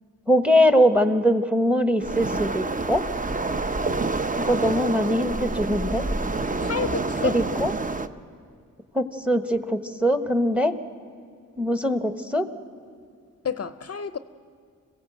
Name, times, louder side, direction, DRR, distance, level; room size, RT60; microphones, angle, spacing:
voice 1, 0.3-3.0 4.4-6.0 7.2-7.7 8.9-10.7 11.6-12.4, equal, 5° right, 1.1 m, -22 dB
Waves surf, 2.0-8.1, right 3 dB, 25° right, 0.7 m, -27 dB
voice 2, 6.6-7.4 13.4-14.2, left 6 dB, 50° left, 0.6 m, -29 dB
26.5 x 16.5 x 7.9 m
wide cardioid pair, 75°, 33 cm